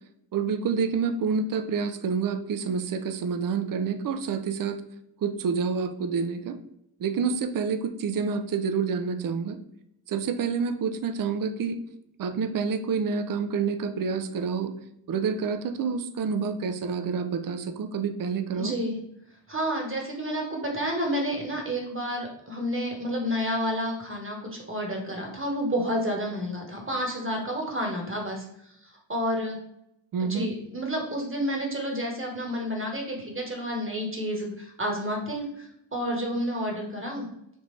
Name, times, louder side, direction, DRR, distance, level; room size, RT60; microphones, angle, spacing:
voice 1, 0.3-4.8 5.2-6.6 7.0-9.6 10.1-11.8 12.2-14.7 15.1-18.7 30.1-30.5, right 5 dB, 50° right, 9 dB, 0.5 m, -28 dB
voice 2, 18.6-19.0 19.5-29.6 30.2-37.3, equal, 25° right, 0 dB, 1.2 m, -30 dB
3.5 x 2.5 x 3.2 m, 0.80 s
cardioid pair, 45°, 46 cm